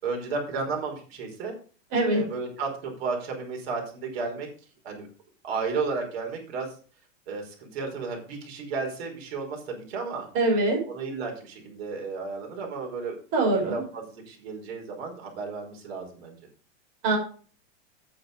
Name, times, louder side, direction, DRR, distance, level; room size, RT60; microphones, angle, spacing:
voice 1, 0.0-1.5 2.1-4.5 4.8-5.1 5.4-6.7 7.3-10.3 10.9-13.2 13.5-16.4, right 4 dB, 55° right, 2 dB, 5.0 m, -33 dB
voice 2, 1.9-2.2 10.3-10.8 13.3-13.8 17.0-17.2, right 2 dB, 35° right, -1 dB, 6.0 m, -23 dB
9.2 x 8.7 x 5.4 m, 0.40 s
supercardioid pair, 170°, 37 cm